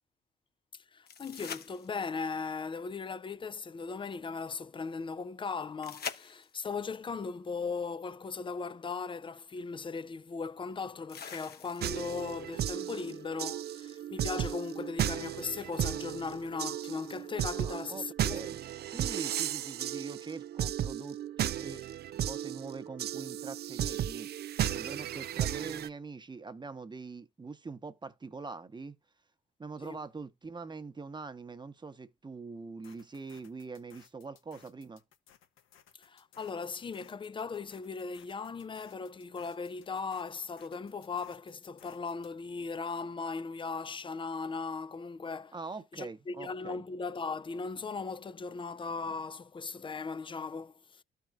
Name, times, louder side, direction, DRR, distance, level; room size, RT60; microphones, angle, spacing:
voice 1, 0.9-18.5 29.8-30.0 36.0-45.6 45.9-51.0, left 4 dB, 25° left, 0.5 m, -38 dB
sound 1, 1.1-2.3 5.8-6.8 8.7-8.8 11.1-12.1 15.1-15.2, left 7 dB, 50° left, 1.1 m, -43 dB
sound 2, 11.8-25.9, right 11 dB, 55° right, 0.4 m, -35 dB
voice 2, 17.6-21.8 22.2-24.3 24.7-28.9 29.6-35.0 45.5-46.8, right 4 dB, 20° right, 1.0 m, -43 dB
sound 3, 32.8-42.4, left 9 dB, 85° left, 1.4 m, -61 dB
13.0 x 4.5 x 2.5 m
cardioid pair, 90°, 20 cm